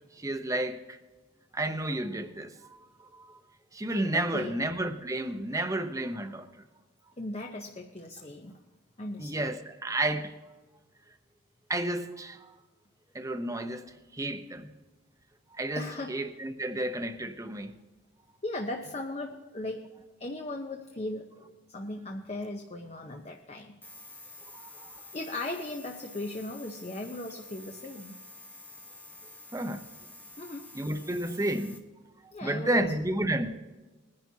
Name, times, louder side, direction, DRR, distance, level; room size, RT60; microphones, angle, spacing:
voice 1, 0.1-1.0 1.5-2.5 3.0-3.4 3.7-6.5 9.2-10.3 11.7-12.5 13.1-13.9 14.1-14.7 15.5-17.7 24.5-25.0 29.5-29.8 30.7-31.8 32.4-33.5, right 1 dB, 15° right, 0.7 m, -31 dB
voice 2, 4.1-4.5 7.2-8.6 9.0-9.5 15.7-16.2 18.4-19.9 20.2-23.7 25.1-28.2 30.4-30.7 32.3-32.9, left 2 dB, 30° left, 0.7 m, -37 dB
sound 1, 23.8-31.8, left 2 dB, 10° left, 1.1 m, -49 dB
21.0 x 10.5 x 2.8 m
head